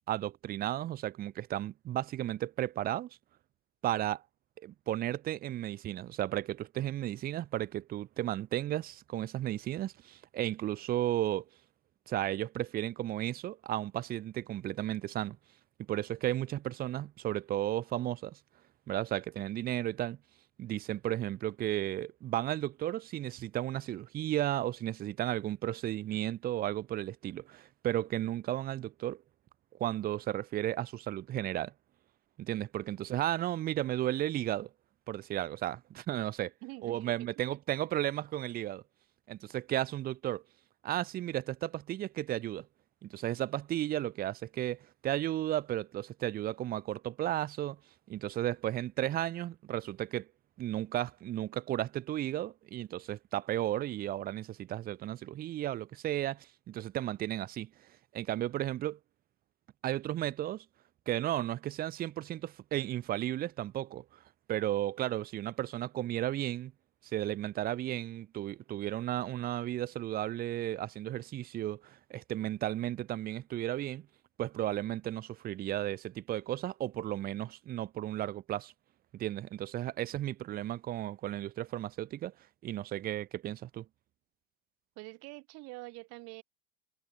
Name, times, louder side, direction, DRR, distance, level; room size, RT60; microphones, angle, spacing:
voice 1, 0.1-3.1 3.8-4.2 4.6-11.4 12.1-15.4 15.9-18.4 18.9-20.2 20.6-29.2 29.8-31.7 32.4-34.7 35.1-36.5 36.8-38.8 39.3-40.4 40.8-42.7 43.0-47.8 48.1-50.3 50.6-57.7 58.1-59.0 59.8-60.6 61.1-64.0 64.5-66.7 67.1-74.1 74.4-78.7 79.1-82.3 82.6-83.9, right 13 dB, 30° right, 0.7 m, -34 dB
voice 2, 36.6-37.5 85.0-86.4, right 26 dB, 50° right, 4.3 m, -46 dB
figure-of-eight pair, 80°, 31 cm